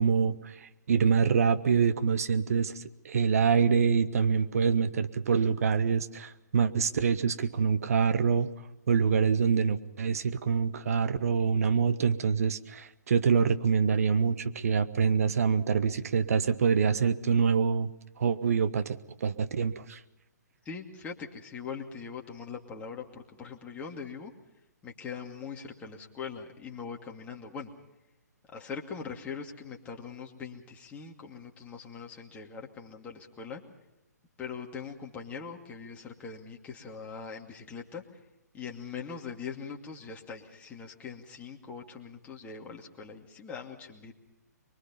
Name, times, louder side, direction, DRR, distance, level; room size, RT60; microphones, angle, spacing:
voice 1, 0.0-8.5 8.9-17.9 18.2-20.0, right 6 dB, 55° right, 11 dB, 1.3 m, -26 dB
voice 2, 20.6-24.3 24.8-27.7 28.5-33.6 34.4-38.2 38.5-44.1, left 6 dB, 15° left, 0 dB, 2.5 m, -41 dB
24.0 x 23.5 x 5.5 m, 0.97 s
figure-of-eight pair, 130°, 9 cm